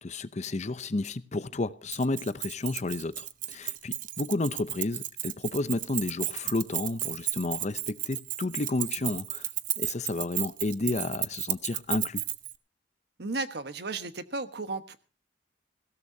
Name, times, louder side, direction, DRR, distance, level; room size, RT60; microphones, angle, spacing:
voice 1, 0.0-9.5 9.8-12.2, left 2 dB, 40° left, 0.7 m, -31 dB
Keys jangling, 1.9-12.5, right 14 dB, 50° right, 0.7 m, -33 dB
voice 2, 13.2-15.0, right 3 dB, 65° right, 1.3 m, -34 dB
20.0 x 16.5 x 2.8 m
head